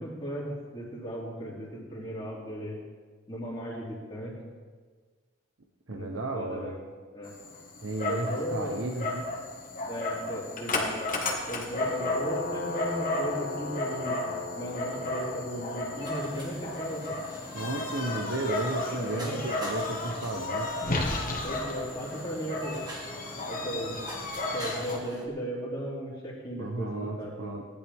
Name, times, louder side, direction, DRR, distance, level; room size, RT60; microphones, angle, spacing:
voice 1, 0.0-2.8 3.3-4.3 5.9-6.8 7.1-7.4 8.1-8.9 9.9-11.0 11.5-14.2 14.6-17.2 18.9-19.4 21.4-22.8 23.5-24.0 24.5-27.6, equal, 20° left, -5 dB, 2.9 m, -36 dB
voice 2, 5.9-6.7 7.8-9.2 17.5-20.7 26.6-27.6, right 2 dB, 70° right, 2 dB, 1.0 m, -33 dB
Dog, 7.2-25.0, left 2 dB, 40° left, 1.7 m, -33 dB
sound 1, 16.0-25.3, equal, 20° right, 1.8 m, -44 dB
17.5 x 10.5 x 3.6 m, 1.5 s
head